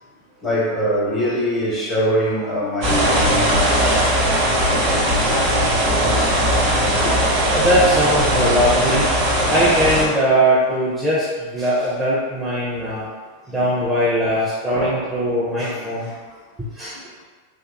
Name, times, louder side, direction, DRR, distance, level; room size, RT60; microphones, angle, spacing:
voice 1, 0.4-5.8 6.9-7.4 7.9-8.0 8.4-8.5 12.7-12.9 13.5-13.8 14.7-15.1, equal, 20° left, -7 dB, 1.1 m, -25 dB
sound 1, 2.8-10.0, equal, 40° right, 0.9 m, -18 dB
voice 2, 7.5-9.1 9.5-13.1 13.5-16.1 16.7-17.0, equal, 15° right, -9 dB, 0.6 m, -20 dB
3.6 x 2.3 x 2.2 m, 1.4 s
figure-of-eight pair, 90°, 0 cm